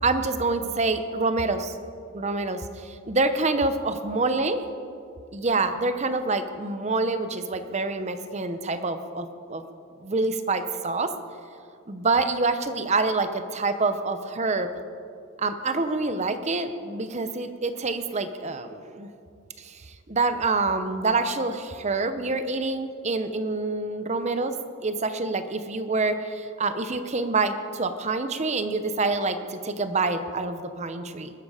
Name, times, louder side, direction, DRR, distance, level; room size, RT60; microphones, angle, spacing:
voice 1, 0.0-1.7 2.1-4.6 5.3-9.6 10.0-11.1 11.9-14.7 15.4-19.1 19.6-24.5 24.8-31.3, right 3 dB, 35° right, 9 dB, 0.8 m, -26 dB
21.5 x 12.5 x 5.0 m, 2.4 s
head